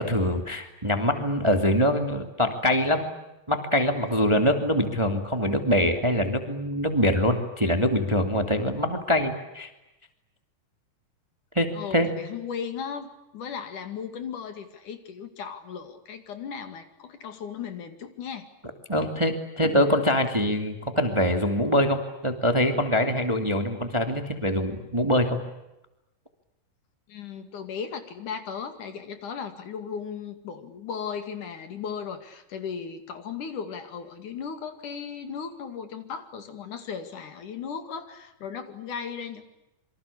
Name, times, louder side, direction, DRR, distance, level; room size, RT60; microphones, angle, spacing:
voice 1, 0.0-3.1 3.5-9.7 11.5-12.1 18.9-25.4, equal, 10° right, 6 dB, 2.1 m, -24 dB
voice 2, 11.7-18.5 27.1-39.4, left 6 dB, 65° left, 8 dB, 3.7 m, -36 dB
27.5 x 25.0 x 8.5 m, 0.94 s
omnidirectional pair, 3.9 m